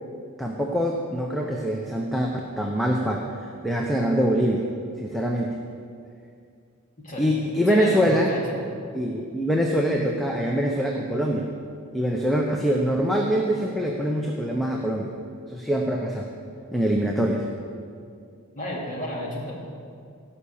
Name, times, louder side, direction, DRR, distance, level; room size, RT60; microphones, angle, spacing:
voice 1, 0.4-2.3 2.6-3.2 3.6-4.6 5.0-5.6 7.2-8.3 8.9-11.5 11.9-15.1 15.5-16.3 16.7-17.4, equal, ahead, 0 dB, 0.7 m, -24 dB
voice 2, 7.7-8.6 18.5-19.5, left 1 dB, 35° left, -4 dB, 2.7 m, -32 dB
16.5 x 5.7 x 7.1 m, 2.3 s
head